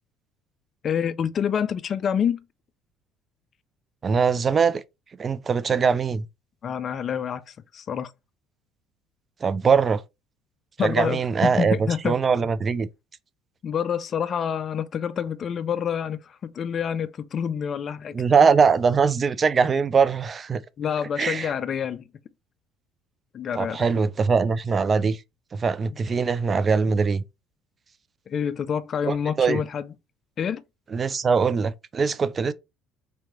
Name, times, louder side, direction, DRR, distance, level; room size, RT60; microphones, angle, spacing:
voice 1, 0.8-2.4 6.6-8.1 10.8-12.2 13.6-18.1 20.8-22.0 23.3-23.8 28.3-29.9 30.4-30.6, left 8 dB, 45° left, 0.3 m, -27 dB
voice 2, 4.0-4.8 5.2-6.3 9.4-10.0 10.8-11.8 12.0-12.9 18.1-20.6 21.2-21.5 23.6-25.2 25.5-27.2 29.1-29.6 30.9-32.5, right 5 dB, 35° right, 0.3 m, -22 dB
3.4 x 2.9 x 3.0 m
hypercardioid pair, 65°, 0 cm